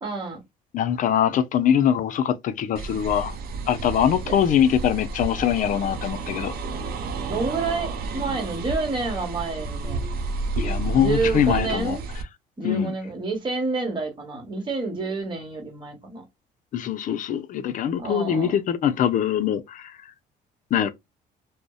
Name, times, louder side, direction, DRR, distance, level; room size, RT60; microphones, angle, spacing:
voice 1, 0.0-0.4 4.3-4.4 7.3-10.0 11.0-12.0 12.6-16.2 18.0-18.5, right 3 dB, 30° right, 1.2 m, -28 dB
voice 2, 0.7-3.4 3.7-6.5 10.6-12.0 12.6-12.9 16.7-20.0 20.7-20.9, left 9 dB, 50° left, 0.5 m, -23 dB
sound 1, 2.8-12.2, right 3 dB, 65° right, 0.6 m, -31 dB
2.6 x 2.1 x 2.3 m
cardioid pair, 110°, 17 cm